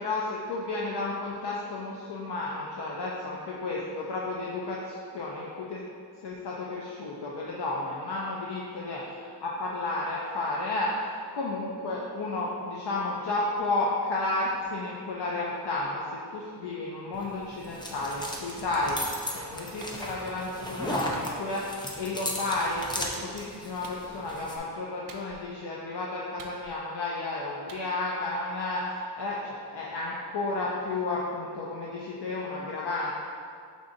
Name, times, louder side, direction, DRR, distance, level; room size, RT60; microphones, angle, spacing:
voice 1, 0.0-5.8 6.1-33.1, left 2 dB, 80° left, -4 dB, 0.5 m, -32 dB
sound 1, 17.1-24.6, equal, 10° left, 0.4 m, -36 dB
Clapping, 19.8-20.0 21.1-21.3 22.5-22.7 23.8-24.0 25.1-25.5 26.4-26.9 27.7-27.9, right 4 dB, 55° right, 0.5 m, -48 dB
5.1 x 3.7 x 2.5 m, 2.3 s
wide cardioid pair, 105°, 40 cm